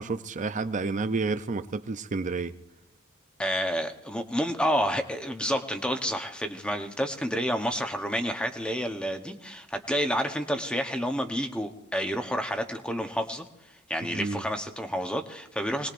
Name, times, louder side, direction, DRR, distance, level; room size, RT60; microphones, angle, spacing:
voice 1, 0.0-2.5 14.1-14.4, right 3 dB, 35° right, 0.5 m, -30 dB
voice 2, 3.4-13.5 13.9-15.9, equal, 5° left, 0.9 m, -29 dB
26.5 x 20.0 x 2.6 m
head